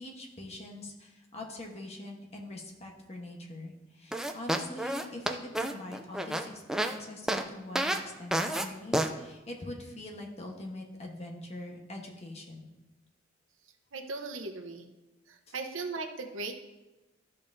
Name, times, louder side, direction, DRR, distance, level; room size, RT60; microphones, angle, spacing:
voice 1, 0.0-12.7 15.5-15.6, left 1 dB, 35° left, 0 dB, 1.1 m, -43 dB
sound 1, 4.1-7.0 7.3-7.4 7.8-8.0 8.3-8.7 8.9-9.1, right 1 dB, 5° right, 0.4 m, -29 dB
voice 2, 13.9-14.9 15.3-16.5, right 3 dB, 85° right, 5 dB, 0.9 m, -38 dB
13.0 x 5.4 x 2.7 m, 1.1 s
head